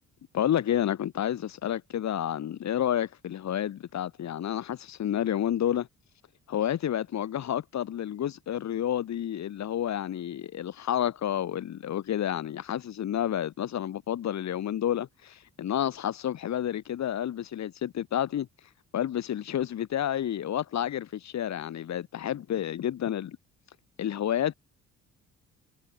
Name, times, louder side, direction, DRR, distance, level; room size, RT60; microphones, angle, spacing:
voice 1, 0.3-5.9 6.5-18.5 18.9-23.4 24.0-24.5, left 10 dB, 65° left, 2.8 m, -30 dB
cardioid pair, 90°, 30 cm